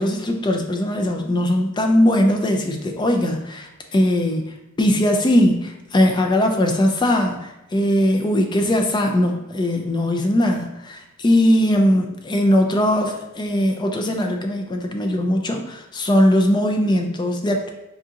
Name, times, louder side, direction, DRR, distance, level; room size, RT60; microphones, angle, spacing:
voice 1, 0.0-17.7, left 1 dB, 20° left, 3 dB, 0.4 m, -20 dB
4.7 x 2.5 x 2.7 m, 0.94 s
head